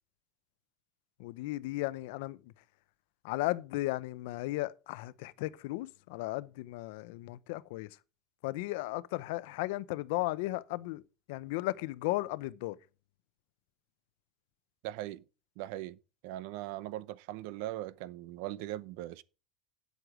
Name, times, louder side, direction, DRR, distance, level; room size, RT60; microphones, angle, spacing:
voice 1, 1.2-2.5 3.2-8.0 8.4-11.0 11.3-12.8, left 19 dB, 80° left, 0.6 m, -35 dB
voice 2, 14.8-15.2 15.6-16.0 16.2-19.2, right 15 dB, 70° right, 0.7 m, -40 dB
9.3 x 8.0 x 4.9 m
cardioid pair, 165°, 0 cm